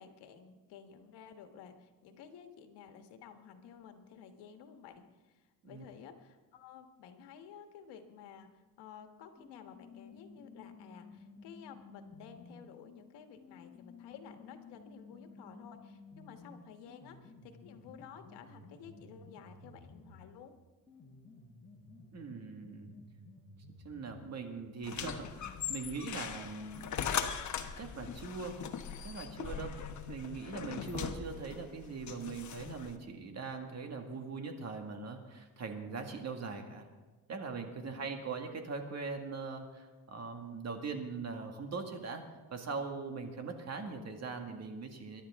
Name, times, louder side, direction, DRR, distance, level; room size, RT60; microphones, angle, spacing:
voice 1, 0.0-20.5 37.8-38.2, left 7 dB, 85° left, 6 dB, 1.6 m, -53 dB
sound 1, 9.4-12.7 13.4-20.3 20.9-24.3, left 3 dB, 15° left, 4.6 m, -54 dB
voice 2, 22.1-22.9 23.8-26.9 27.8-28.6 29.0-29.8 30.1-36.9 37.3-42.2 42.5-45.2, right 4 dB, 40° right, 4 dB, 1.9 m, -41 dB
sound 2, 24.8-33.0, left 8 dB, 45° left, 1.1 m, -40 dB
22.5 x 11.5 x 3.7 m, 1.3 s
cardioid pair, 130°, 40 cm